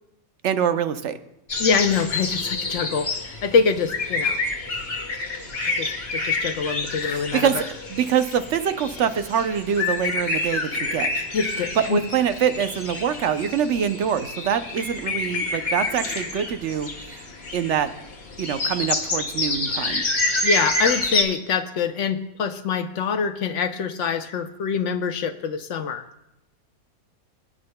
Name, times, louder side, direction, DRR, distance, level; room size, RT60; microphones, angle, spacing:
voice 1, 0.4-1.2 7.0-11.1 11.8-17.2 17.5-17.9 18.4-20.0, right 8 dB, 60° right, 10 dB, 0.9 m, -25 dB
sound 1, 1.5-21.2, left 3 dB, 45° left, 1.5 m, -28 dB
voice 2, 1.6-3.1 3.4-4.4 5.8-7.5 11.3-12.0 20.4-26.0, left 5 dB, 65° left, 9 dB, 0.9 m, -24 dB
21.5 x 9.6 x 2.2 m, 0.89 s
omnidirectional pair, 1.5 m